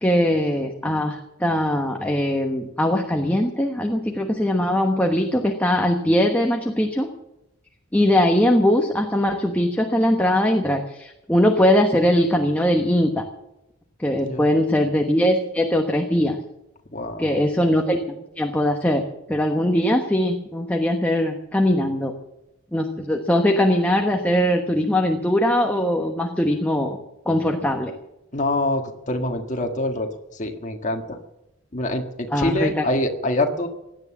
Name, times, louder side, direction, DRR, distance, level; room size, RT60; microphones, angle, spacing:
voice 1, 0.0-7.1 7.9-13.2 14.0-16.4 17.2-19.0 19.3-22.1 22.7-27.0 27.3-27.9 32.3-32.8, left 1 dB, 5° left, 3 dB, 1.1 m, -21 dB
voice 2, 14.2-14.6 16.9-17.3 28.3-31.2 31.7-33.7, left 1 dB, 35° left, 3 dB, 1.6 m, -25 dB
17.5 x 11.0 x 7.3 m, 0.89 s
head